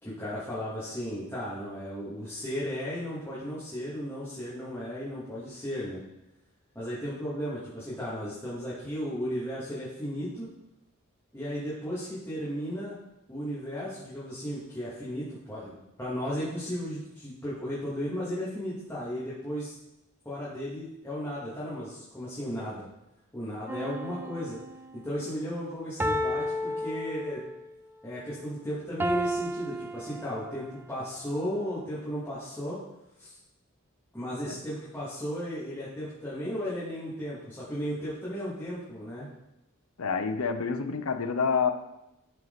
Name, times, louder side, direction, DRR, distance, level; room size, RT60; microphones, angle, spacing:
voice 1, 0.0-6.0 6.7-10.5 11.3-13.0 13.3-19.7 20.2-22.8 23.3-24.6 24.9-27.4 28.0-32.8 33.2-33.3 34.1-39.3, equal, 10° left, -11 dB, 2.5 m, -35 dB
sound 1, 23.7-25.0 26.0-27.7 29.0-30.7 31.4-31.5, equal, 10° right, 0.3 m, -32 dB
voice 2, 40.0-41.7, left 5 dB, 85° left, 8 dB, 0.7 m, -28 dB
12.5 x 4.6 x 4.1 m, 0.89 s
head